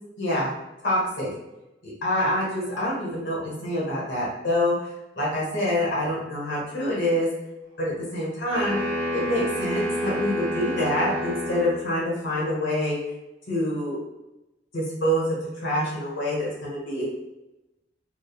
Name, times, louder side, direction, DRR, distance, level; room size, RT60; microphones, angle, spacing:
voice 1, 0.2-0.5 0.8-1.3 1.8-4.7 5.2-7.3 7.8-8.8 9.1-13.0 13.5-14.0 14.7-17.0, left 1 dB, 90° left, -6 dB, 1.0 m, -26 dB
sound 1, 8.5-11.9, equal, 65° right, 0.9 m, -29 dB
3.2 x 2.1 x 2.3 m, 0.96 s
head